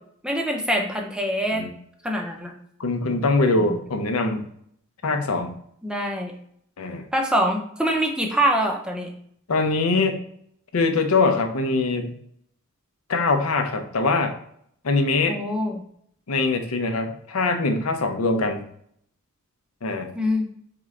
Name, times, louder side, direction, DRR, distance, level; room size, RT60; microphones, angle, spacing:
voice 1, 0.2-1.6 2.0-2.5 3.6-3.8 5.8-6.3 7.1-9.1 15.3-15.8 20.2-20.5, equal, 5° right, 1 dB, 0.6 m, -24 dB
voice 2, 2.8-4.5 5.0-5.5 6.8-7.1 9.5-10.2 10.7-12.1 13.1-14.4 14.8-15.4 16.3-18.7 19.8-20.1, left 3 dB, 80° left, 6 dB, 0.6 m, -23 dB
3.8 x 3.7 x 3.2 m, 0.67 s
head